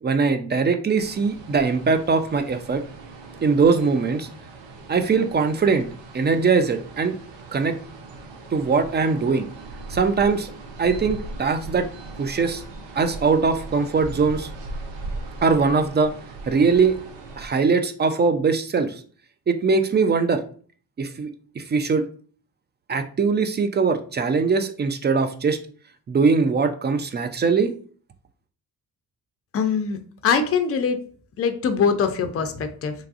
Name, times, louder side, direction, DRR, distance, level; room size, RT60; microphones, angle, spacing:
voice 1, 0.0-2.8 3.4-4.3 4.9-5.9 6.1-7.1 7.5-7.8 8.5-9.5 9.9-10.5 10.8-11.9 12.2-12.6 13.0-14.5 15.4-16.1 16.5-16.9 17.4-18.9 19.5-20.4 21.0-21.3 21.6-22.0 22.9-25.6 26.1-27.7, right 4 dB, 25° right, 7 dB, 0.4 m, -21 dB
sound 1, 0.9-17.5, right 2 dB, 70° right, 0.7 m, -39 dB
voice 2, 29.5-31.0 31.4-32.9, left 6 dB, 30° left, 8 dB, 0.5 m, -23 dB
3.1 x 2.3 x 2.5 m, 0.43 s
hypercardioid pair, 45°, 46 cm